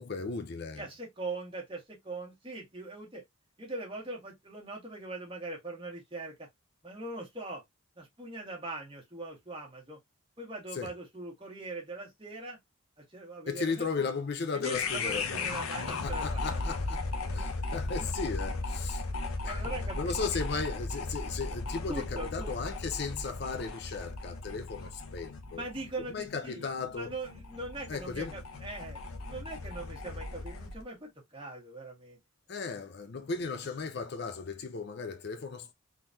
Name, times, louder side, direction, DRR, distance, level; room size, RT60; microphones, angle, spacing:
voice 1, 0.0-0.9 10.7-10.9 13.5-15.6 15.9-17.1 17.3-19.0 19.4-25.6 26.1-27.1 27.9-28.4 32.5-35.7, left 4 dB, 50° left, 0.5 m, -36 dB
voice 2, 0.8-3.2 3.6-6.5 6.8-7.6 8.0-10.0 10.4-12.6 13.1-13.8 14.5-16.6 19.4-20.4 21.9-22.5 25.5-26.7 26.9-32.2, right 2 dB, 25° right, 1.6 m, -41 dB
sound 1, 14.6-30.8, left 3 dB, 80° left, 0.8 m, -36 dB
3.8 x 3.1 x 2.6 m
head